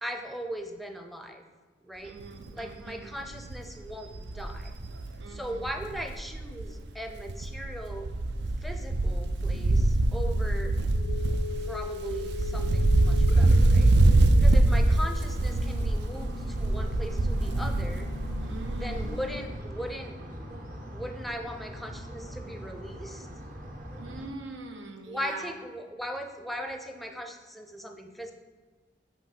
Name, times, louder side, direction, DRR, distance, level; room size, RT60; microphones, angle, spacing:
voice 1, 0.0-1.4 1.8-2.2 2.5-4.7 5.3-8.1 8.6-10.8 11.6-13.9 14.4-18.1 18.8-20.2 20.9-23.3 25.1-28.3, equal, ahead, 5 dB, 0.5 m, -38 dB
voice 2, 2.0-3.1 5.2-5.7 14.7-15.1 18.4-19.1 23.9-25.5, right 3 dB, 90° right, 5 dB, 0.8 m, -43 dB
Wind, 2.2-2.5 2.9-3.0 3.2-6.8 7.1-19.3 19.5-19.6, right 2 dB, 65° right, 0.4 m, -24 dB
sound 1, 9.5-19.5, left 6 dB, 70° left, 0.3 m, -42 dB
sound 2, 15.0-24.3, equal, 50° right, 1.0 m, -41 dB
7.7 x 3.0 x 5.4 m, 1.4 s
head